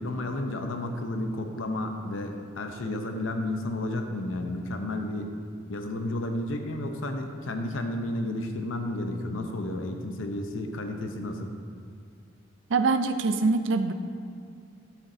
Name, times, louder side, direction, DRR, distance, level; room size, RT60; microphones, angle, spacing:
voice 1, 0.0-5.3 5.7-11.5, left 1 dB, 80° left, 5 dB, 0.8 m, -32 dB
voice 2, 12.7-13.9, right 3 dB, 70° right, 9 dB, 0.5 m, -24 dB
12.0 x 7.1 x 2.7 m, 2.4 s
head